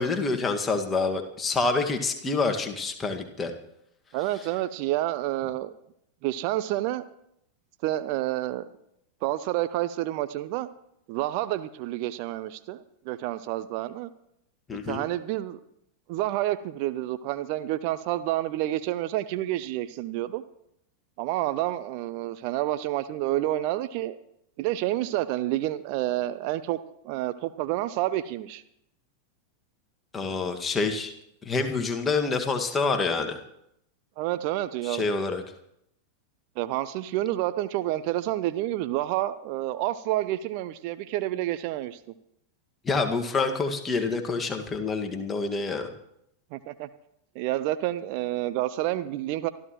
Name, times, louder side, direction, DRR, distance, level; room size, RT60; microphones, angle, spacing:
voice 1, 0.0-3.5 14.7-15.0 30.1-31.1 31.5-33.4 34.8-35.4 42.8-45.9, left 4 dB, 15° left, 4 dB, 1.8 m, -27 dB
voice 2, 4.1-5.7 6.2-7.0 7.8-8.6 9.2-10.7 11.1-14.1 14.9-15.6 16.1-20.4 21.2-24.2 24.6-26.8 27.0-28.6 34.2-35.0 36.6-42.0 46.5-46.9 47.3-49.5, right 15 dB, 45° right, 13 dB, 0.6 m, -29 dB
24.0 x 13.5 x 3.1 m, 0.76 s
figure-of-eight pair, 90°, 0 cm